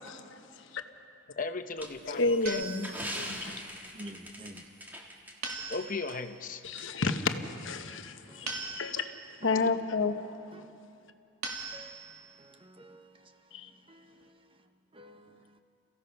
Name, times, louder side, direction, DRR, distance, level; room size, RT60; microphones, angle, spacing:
voice 1, 0.0-0.8 2.0-3.7 6.6-10.7 13.5-13.7, left 3 dB, 60° left, 1.0 m, -32 dB
voice 2, 1.4-2.6 5.7-6.6, left 3 dB, 40° left, 0.8 m, -36 dB
sound 1, 1.8-5.8 6.1-6.2 6.8-6.9, equal, 10° right, 1.6 m, -42 dB
sound 2, 2.5-3.4 5.4-6.3 8.5-9.4 11.4-12.3, right 4 dB, 85° right, 2.4 m, -40 dB
voice 3, 3.9-4.6 8.3-8.6 10.5-10.7 11.7-12.1 12.4-13.2 13.9-14.2 14.9-15.4, right 1 dB, 25° right, 0.7 m, -49 dB
29.5 x 15.5 x 5.7 m
head